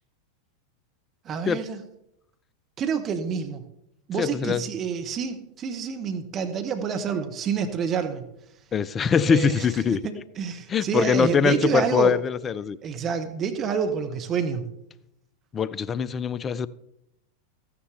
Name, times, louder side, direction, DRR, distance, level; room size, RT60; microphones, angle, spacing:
voice 1, 1.2-1.8 2.8-3.7 4.1-8.3 9.2-9.7 10.0-12.2 12.8-14.7, right 6 dB, 30° right, 1.0 m, -28 dB
voice 2, 4.2-4.6 8.7-10.0 10.7-12.8 15.5-16.7, left 6 dB, 20° left, 0.4 m, -23 dB
14.0 x 9.7 x 3.4 m
figure-of-eight pair, 90°, 0 cm